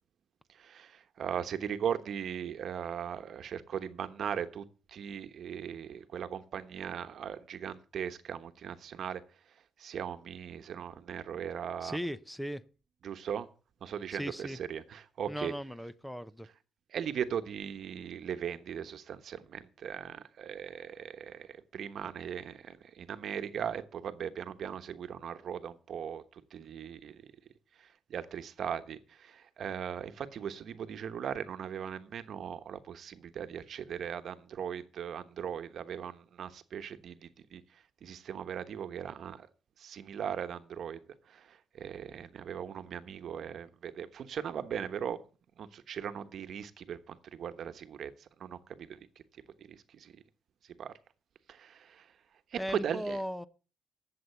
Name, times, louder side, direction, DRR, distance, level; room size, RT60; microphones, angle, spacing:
voice 1, 0.6-9.2 9.8-12.0 13.0-13.5 13.8-15.5 16.9-26.2 26.5-27.2 28.1-37.6 38.0-39.5 39.8-41.0 41.3-45.2 45.6-48.1 48.4-49.0 49.9-50.1 50.8-50.9 51.5-52.1 52.8-53.2, right 8 dB, 65° right, 1.1 m, -39 dB
voice 2, 11.8-12.6 14.1-14.6 15.3-16.5 52.6-53.5, equal, 5° left, 0.7 m, -37 dB
11.5 x 7.7 x 6.8 m
cardioid pair, 105°, 0 cm